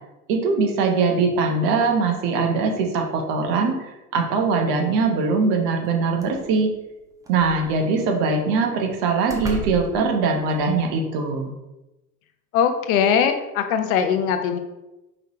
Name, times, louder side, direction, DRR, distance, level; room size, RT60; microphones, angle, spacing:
voice 1, 0.3-6.7 7.3-11.5, right 4 dB, 50° right, 2 dB, 1.0 m, -22 dB
sound 1, 5.8-5.9 6.2-6.6 7.2-8.1 8.8-8.9 9.3-10.9, right 4 dB, 10° right, 0.4 m, -34 dB
voice 2, 12.5-14.6, left 7 dB, 60° left, 7 dB, 0.7 m, -21 dB
4.9 x 3.1 x 2.9 m, 0.99 s
hypercardioid pair, 80°, 48 cm